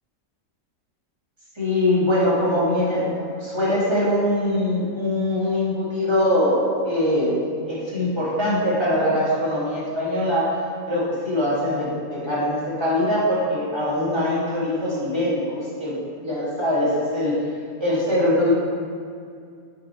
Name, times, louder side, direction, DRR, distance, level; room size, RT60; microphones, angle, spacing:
voice 1, 1.5-10.6 10.9-17.4 17.8-18.5, left 1 dB, 20° right, -9 dB, 1.7 m, -22 dB
7.3 x 3.6 x 4.5 m, 2.3 s
omnidirectional pair, 1.5 m